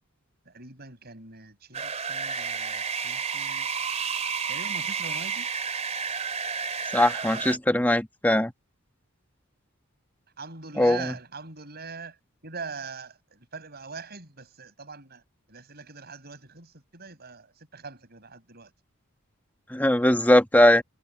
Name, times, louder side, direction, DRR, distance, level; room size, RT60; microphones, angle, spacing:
voice 1, 0.5-3.7 4.5-5.5 10.4-12.2 12.4-15.2 15.5-18.7, right 4 dB, 50° right, 6.9 m, -42 dB
sound 1, 1.7-7.6, right 6 dB, 30° right, 3.0 m, -31 dB
voice 2, 6.9-8.5 10.8-11.1 19.7-20.8, left 1 dB, 10° left, 1.2 m, -20 dB
head